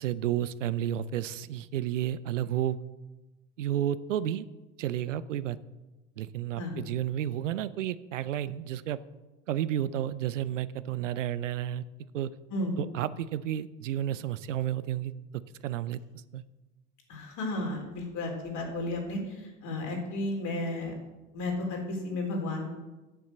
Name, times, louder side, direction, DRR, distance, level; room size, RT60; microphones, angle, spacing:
voice 1, 0.0-2.8 3.6-4.5 4.8-5.6 6.2-9.0 9.5-11.8 12.1-12.3 12.8-15.1 15.6-16.0 16.3-16.4, right 11 dB, 80° right, 17 dB, 0.6 m, -31 dB
voice 2, 17.1-20.9 21.3-22.6, left 2 dB, 55° left, 1 dB, 3.8 m, -33 dB
9.3 x 7.3 x 7.8 m, 1.1 s
hypercardioid pair, 65°, 37 cm